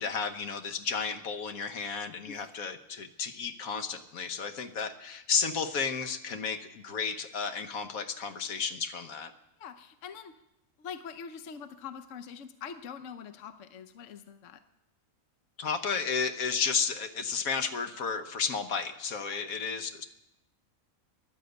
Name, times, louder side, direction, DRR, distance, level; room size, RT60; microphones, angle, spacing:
voice 1, 0.0-9.3 15.6-20.0, left 6 dB, 80° left, 8 dB, 1.5 m, -32 dB
voice 2, 9.6-10.3 10.8-14.6 19.3-19.4, left 7 dB, 65° left, 9 dB, 1.1 m, -44 dB
15.5 x 11.0 x 8.0 m, 0.91 s
omnidirectional pair, 1.5 m